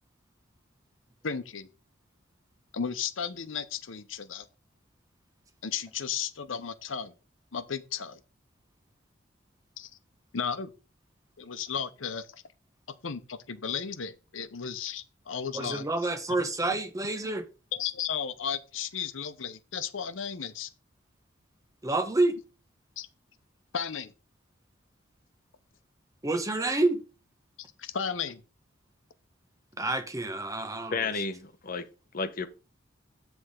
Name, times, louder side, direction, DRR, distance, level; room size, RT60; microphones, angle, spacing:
voice 1, 1.2-1.7 2.7-4.5 5.6-7.1 7.5-8.2 9.8-9.9 10.3-10.7 11.4-12.4 13.0-15.8 17.7-20.7 23.0-23.1 23.7-24.1 27.8-28.4, left 7 dB, 85° left, 0.8 m, -34 dB
voice 2, 15.5-17.5 21.8-22.4 26.2-27.0 29.8-31.0, right 2 dB, 20° right, 0.9 m, -28 dB
voice 3, 30.9-31.9 32.1-32.5, left 4 dB, 50° left, 0.8 m, -31 dB
7.7 x 3.5 x 6.3 m
head